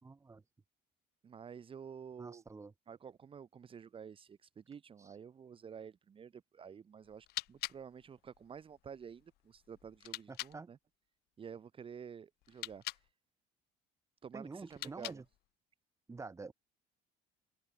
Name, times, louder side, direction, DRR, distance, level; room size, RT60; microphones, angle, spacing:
voice 1, 0.0-0.4 2.2-2.7 5.0-5.1 10.3-10.7 14.3-15.2 16.1-16.5, right 4 dB, 15° right, 3.1 m, -48 dB
voice 2, 1.2-2.4 2.9-10.8 11.4-12.8 14.2-15.2, right 7 dB, 30° right, 2.4 m, -50 dB
sound 1, 7.0-10.6 12.4-13.1 14.6-15.5, left 18 dB, 70° left, 2.5 m, -46 dB
cardioid pair, 125°, 17 cm